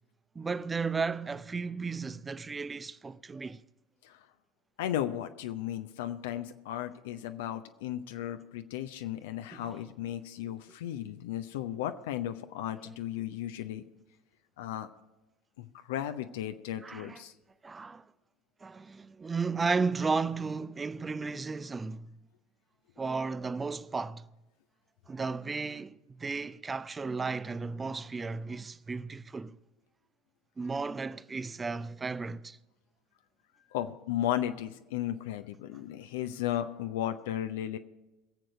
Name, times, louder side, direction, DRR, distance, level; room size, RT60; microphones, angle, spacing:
voice 1, 0.4-3.6 9.5-9.8 12.8-13.0 16.8-17.2 17.6-18.0 18.6-22.1 23.0-24.2 25.1-29.6 30.6-32.6, right 4 dB, 20° right, 0.4 m, -34 dB
voice 2, 4.8-13.8 14.6-14.9 15.6-17.3 33.7-37.8, left 12 dB, 65° left, 0.6 m, -35 dB
22.0 x 7.7 x 4.9 m
figure-of-eight pair, 70°, 0 cm